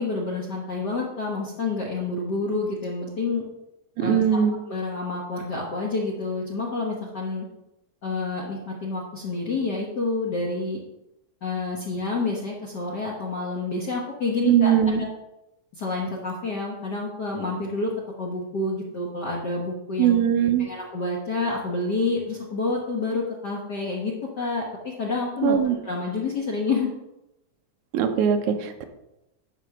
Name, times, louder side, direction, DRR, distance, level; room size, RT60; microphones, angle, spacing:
voice 1, 0.0-3.4 4.0-7.5 8.0-10.8 11.4-14.7 15.0-15.1 15.7-20.2 20.6-26.9, left 3 dB, 65° left, -3 dB, 1.0 m, -28 dB
voice 2, 4.0-4.5 14.5-15.0 20.0-20.7 25.4-25.8 27.9-28.8, right 9 dB, 75° right, 5 dB, 2.2 m, -20 dB
11.0 x 4.1 x 6.0 m, 0.92 s
omnidirectional pair, 3.6 m